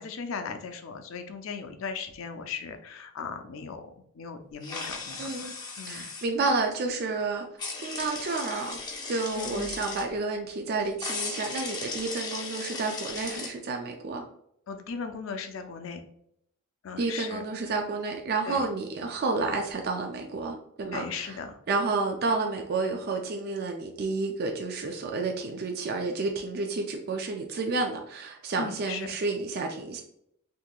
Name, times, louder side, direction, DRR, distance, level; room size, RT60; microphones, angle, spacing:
voice 1, 0.0-5.3 5.8-6.1 9.4-9.8 14.7-16.0 16.8-17.4 18.4-18.7 20.9-21.6 28.6-29.1, left 5 dB, 65° left, 7 dB, 0.4 m, -37 dB
sound 1, 4.6-6.3 7.6-10.1 11.0-13.5, left 4 dB, 20° left, 0.6 m, -37 dB
voice 2, 5.2-5.5 5.9-7.5 7.8-8.8 9.1-14.2 17.0-21.4 21.7-30.0, right 3 dB, 45° right, 2 dB, 0.3 m, -30 dB
3.7 x 2.8 x 2.3 m, 0.71 s
head